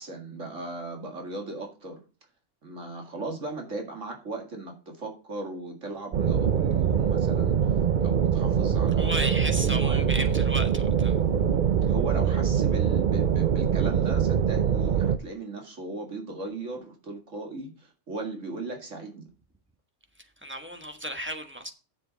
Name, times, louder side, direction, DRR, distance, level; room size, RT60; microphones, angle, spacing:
voice 1, 0.0-2.0 2.6-7.6 8.0-10.4 11.8-19.3, right 2 dB, 85° right, 2.3 m, -37 dB
sound 1, 6.1-15.2, right 8 dB, 50° right, 0.7 m, -23 dB
voice 2, 9.0-11.2 20.4-21.7, equal, 10° right, 1.2 m, -34 dB
10.0 x 7.6 x 4.0 m
omnidirectional pair, 1.3 m